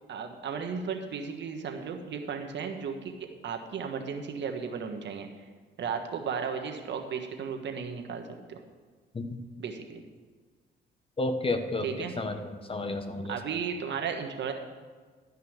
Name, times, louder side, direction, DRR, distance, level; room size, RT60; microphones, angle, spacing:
voice 1, 0.1-5.3 5.8-8.2 8.5-8.6 9.6-10.0 11.8-12.1 13.3-14.5, right 6 dB, 65° right, 4 dB, 1.3 m, -35 dB
voice 2, 11.2-12.4 12.7-13.3, left 2 dB, 25° left, 8 dB, 1.0 m, -31 dB
12.0 x 5.5 x 7.9 m, 1.4 s
cardioid pair, 90°, 20 cm